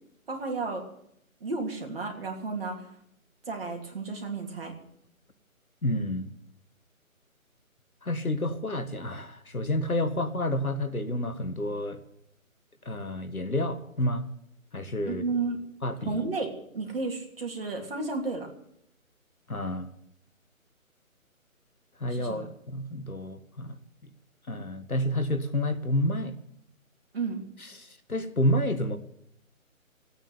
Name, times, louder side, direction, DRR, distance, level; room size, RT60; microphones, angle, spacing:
voice 1, 0.3-0.8 1.4-2.8 3.5-4.7 15.0-15.6 16.0-18.5 22.1-22.5 27.1-27.4, right 3 dB, 40° right, 2 dB, 3.1 m, -32 dB
voice 2, 5.8-6.3 8.0-12.0 12.8-14.3 14.7-15.2 15.8-16.2 19.5-19.9 22.0-23.8 24.5-26.3 27.6-29.0, left 1 dB, 80° left, 10 dB, 1.8 m, -29 dB
14.5 x 9.1 x 9.6 m, 0.74 s
figure-of-eight pair, 150°, 42 cm